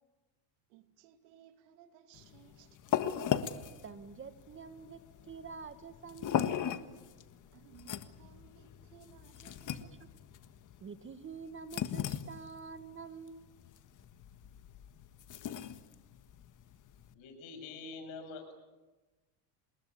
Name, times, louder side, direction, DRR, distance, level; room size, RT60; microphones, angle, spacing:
voice 1, 0.7-3.2 7.5-10.0, right 10 dB, 80° right, 8 dB, 2.7 m, -60 dB
sound 1, 2.2-17.1, left 9 dB, 40° left, 1.6 m, -38 dB
voice 2, 3.8-6.6 9.8-10.1 10.8-13.5, right 5 dB, 25° right, 11 dB, 1.5 m, -47 dB
voice 3, 17.1-18.5, left 4 dB, 70° left, 6 dB, 7.5 m, -45 dB
27.0 x 21.0 x 8.9 m, 1.2 s
supercardioid pair, 125°, 48 cm